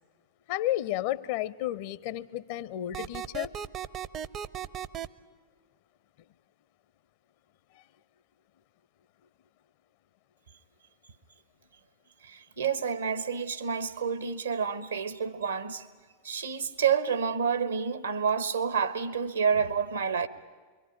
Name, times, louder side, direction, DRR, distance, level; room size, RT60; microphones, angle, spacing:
voice 1, 0.5-3.5, left 14 dB, 50° left, 0.7 m, -32 dB
sound 1, 2.9-5.1, right 9 dB, 30° right, 0.7 m, -36 dB
voice 2, 12.2-15.9 16.2-20.3, right 6 dB, 75° right, 1.4 m, -29 dB
26.5 x 23.0 x 9.1 m
figure-of-eight pair, 90°, 0 cm